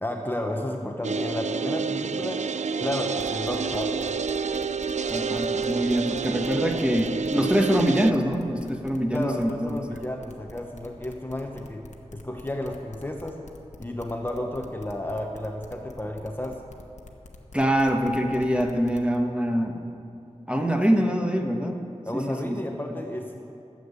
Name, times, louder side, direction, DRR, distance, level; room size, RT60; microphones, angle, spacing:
voice 1, 0.0-2.5 2.8-4.1 6.5-6.6 6.9-7.1 9.1-13.4 13.8-16.6 22.1-23.4, left 1 dB, 15° left, 2 dB, 0.9 m, -32 dB
sound 1, 1.0-8.1, right 5 dB, 75° right, 0.4 m, -28 dB
sound 2, 3.2-19.2, left 3 dB, 75° left, 1.2 m, -46 dB
voice 2, 5.1-9.8 17.5-19.9 20.5-21.8 22.1-22.7, equal, 10° right, 3 dB, 1.2 m, -24 dB
13.0 x 7.4 x 8.2 m, 2.7 s
wide cardioid pair, 65°, 12 cm